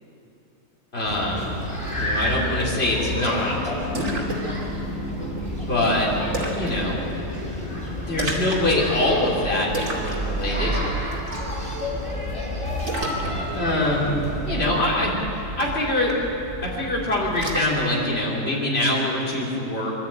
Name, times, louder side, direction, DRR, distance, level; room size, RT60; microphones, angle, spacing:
voice 1, 0.9-1.5 2.0-3.6 5.7-6.1 6.6-7.0 8.1-10.8 13.5-14.1 14.5-15.1 15.4-16.1 16.6-19.9, left 1 dB, 50° left, -5 dB, 3.6 m, -24 dB
sound 1, 1.1-14.6, left 1 dB, 25° left, 3.9 m, -30 dB
Splash splatter, 3.6-17.9, right 2 dB, 80° right, 3.0 m, -32 dB
23.0 x 13.0 x 8.9 m, 3.0 s
omnidirectional pair, 1.4 m